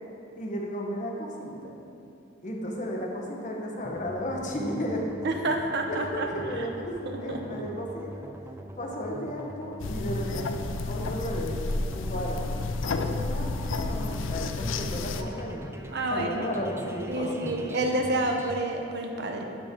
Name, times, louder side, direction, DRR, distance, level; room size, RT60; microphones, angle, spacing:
voice 1, 0.4-1.6 2.4-5.0 5.9-8.3 8.8-11.5 11.9-12.6 12.8-15.7 16.1-17.7, equal, 40° left, -1 dB, 1.3 m, -34 dB
sound 1, 3.8-18.6, right 1 dB, 15° right, 0.5 m, -43 dB
voice 2, 5.2-6.3 7.1-7.6 15.9-16.5 17.1-19.4, right 2 dB, 60° right, 3 dB, 0.9 m, -29 dB
sound 2, 9.8-15.2, left 3 dB, 80° left, 0.5 m, -31 dB
12.0 x 7.2 x 3.8 m, 2.7 s
head